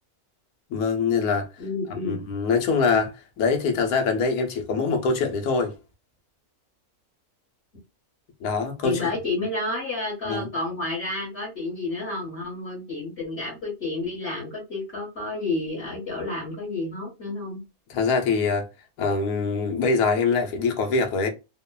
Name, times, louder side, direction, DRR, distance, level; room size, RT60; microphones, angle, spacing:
voice 1, 0.7-1.5 2.0-5.8 8.4-9.0 10.2-10.5 17.9-18.7 19.0-21.3, left 4 dB, 85° left, 1.2 m, -24 dB
voice 2, 1.6-2.2 8.8-17.6, left 2 dB, 45° left, 1.4 m, -30 dB
3.0 x 2.1 x 2.2 m
omnidirectional pair, 1.5 m